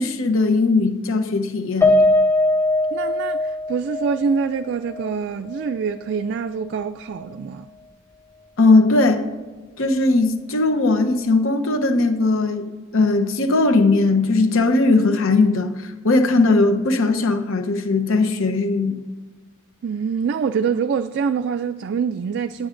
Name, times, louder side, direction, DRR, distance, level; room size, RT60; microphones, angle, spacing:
voice 1, 0.0-2.0 8.6-9.3 9.8-19.0, left 3 dB, 65° left, 0.8 m, -19 dB
Piano, 1.8-6.3 6.7-6.8 7.2-7.3, left 2 dB, 10° left, 0.7 m, -21 dB
voice 2, 2.9-7.7 19.8-22.7, right 6 dB, 50° right, 0.3 m, -25 dB
19.0 x 7.8 x 2.5 m
head